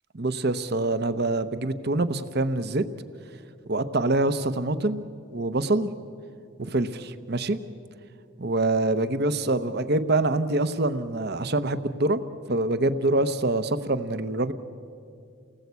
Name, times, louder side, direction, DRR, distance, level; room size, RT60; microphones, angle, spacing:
voice 1, 0.1-2.8 3.7-5.0 5.3-5.9 6.6-7.6 8.4-12.2 12.5-14.5, right 2 dB, 50° right, 12 dB, 0.9 m, -25 dB
29.5 x 19.0 x 8.3 m, 2.5 s
head